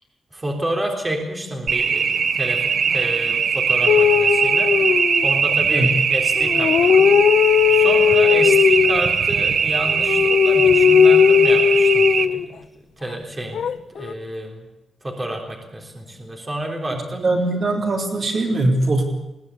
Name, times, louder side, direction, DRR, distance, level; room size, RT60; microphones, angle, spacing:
voice 1, 0.3-4.7 5.2-7.2 7.7-12.6 13.0-14.7 15.0-17.2, right 1 dB, 15° right, 1 dB, 3.6 m, -30 dB
sound 1, 1.7-12.3, right 6 dB, 65° right, 1.3 m, -20 dB
sound 2, 3.9-5.6 6.4-9.0 9.9-12.5 13.5-14.1, left 7 dB, 75° left, 0.8 m, -16 dB
voice 2, 17.1-19.0, right 2 dB, 45° right, 2 dB, 3.8 m, -21 dB
21.0 x 19.0 x 8.4 m, 0.98 s
wide cardioid pair, 175°, 0 cm